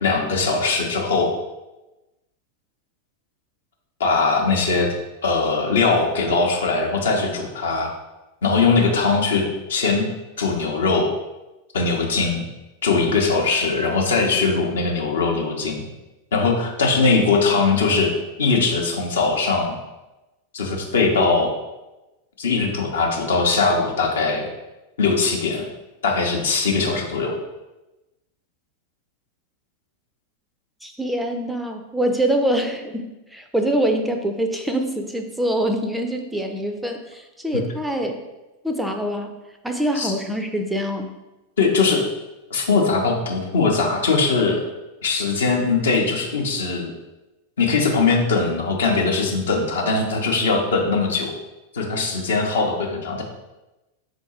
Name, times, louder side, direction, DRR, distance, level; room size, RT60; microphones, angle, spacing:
voice 1, 0.0-1.3 4.0-4.9 5.2-7.9 8.4-10.1 10.4-11.1 11.7-12.4 12.8-15.8 16.3-18.1 18.4-19.8 20.5-21.5 22.4-24.5 25.0-25.6 26.0-27.4 37.5-37.6 39.9-40.1 41.6-42.0 42.5-44.6 45.0-46.9 47.6-51.3 51.7-53.2, left 4 dB, 65° left, 1 dB, 0.7 m, -20 dB
voice 2, 30.8-38.2 38.6-41.2, right 1 dB, 5° right, 5 dB, 0.4 m, -24 dB
3.7 x 2.6 x 4.2 m, 1.0 s
figure-of-eight pair, 90°, 0 cm